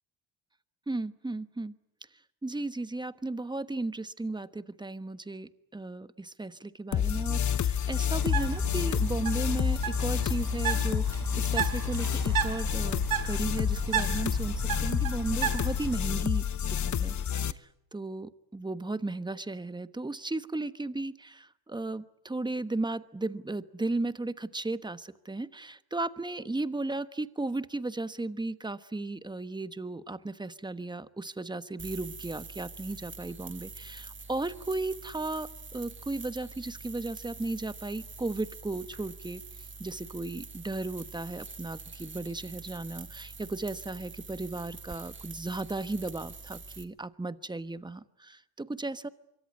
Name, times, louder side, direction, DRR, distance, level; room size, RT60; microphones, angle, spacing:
voice 1, 0.9-1.7 2.4-17.2 17.5-49.1, right 2 dB, 10° right, 13 dB, 1.2 m, -35 dB
sound 1, 6.9-17.5, left 9 dB, 40° left, 1.0 m, -29 dB
Bird, 8.2-16.0, right 8 dB, 50° right, 3.7 m, -34 dB
sound 2, 31.8-46.8, right 4 dB, 25° right, 2.2 m, -45 dB
25.0 x 23.5 x 9.5 m, 0.81 s
cardioid pair, 95°, 44 cm